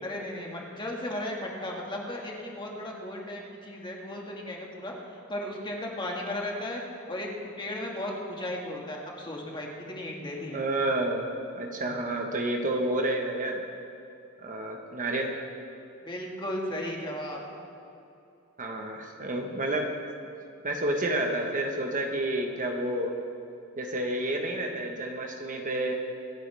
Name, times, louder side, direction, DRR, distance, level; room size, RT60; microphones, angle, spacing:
voice 1, 0.0-4.9 5.3-6.8 7.1-7.3 7.6-10.6 16.0-17.4, left 1 dB, 20° left, -1 dB, 1.8 m, -35 dB
voice 2, 10.5-11.3 11.5-13.6 14.4-15.3 18.6-19.9 20.6-23.1 23.8-25.9, right 1 dB, 40° right, 2 dB, 1.2 m, -29 dB
25.0 x 9.3 x 3.4 m, 2.7 s
head